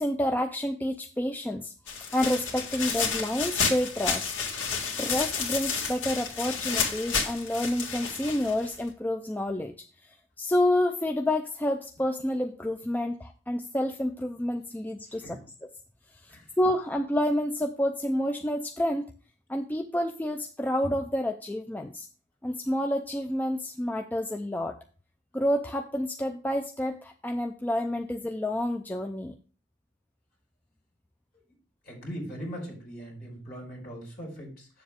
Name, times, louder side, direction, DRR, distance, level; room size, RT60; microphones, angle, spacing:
voice 1, 0.0-1.7 2.1-4.3 5.0-9.7 10.4-15.7 16.2-19.1 19.5-22.1 22.4-24.8 25.3-29.4, left 1 dB, 10° left, 5 dB, 0.4 m, -29 dB
sound 1, 1.9-8.9, left 5 dB, 75° left, 1.8 m, -31 dB
voice 2, 31.8-34.7, equal, 45° left, -1 dB, 4.0 m, -40 dB
7.2 x 7.2 x 3.5 m, 0.38 s
head